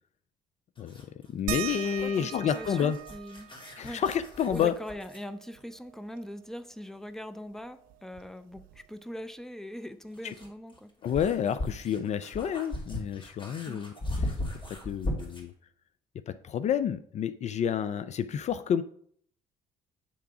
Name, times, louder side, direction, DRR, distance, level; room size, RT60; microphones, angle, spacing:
sound 1, 0.8-5.3 7.6-7.7 9.7-15.5, left 1 dB, 30° left, 2.5 m, -38 dB
voice 1, 1.3-3.0 3.8-4.7 10.2-10.3 11.0-13.9 14.2-14.3 14.7-15.5 16.3-18.8, left 8 dB, 45° left, 13 dB, 0.4 m, -29 dB
sound 2, 1.5-6.6 7.0-7.1 7.4-9.1 10.4-10.5 11.2-11.3, right 13 dB, 70° right, 0.4 m, -42 dB
voice 2, 2.0-3.5 3.8-4.0 4.5-10.9 13.6-13.8, equal, 5° left, 11 dB, 0.6 m, -41 dB
8.6 x 3.4 x 4.9 m, 0.64 s
hypercardioid pair, 60°, 16 cm